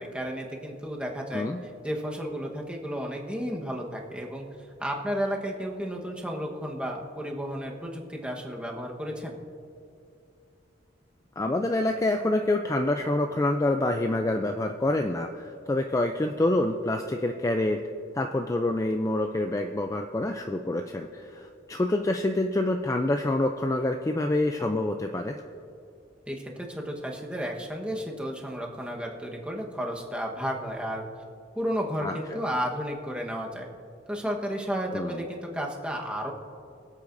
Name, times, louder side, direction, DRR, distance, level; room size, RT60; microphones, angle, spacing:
voice 1, 0.0-4.4 4.8-9.3 26.3-31.0 31.5-33.7 34.1-36.3, equal, 5° right, 0 dB, 1.2 m, -33 dB
voice 2, 11.4-17.8 18.1-25.4 32.0-32.4 34.9-35.2, left 2 dB, 15° left, 5 dB, 0.4 m, -27 dB
24.5 x 8.4 x 2.6 m, 2.5 s
head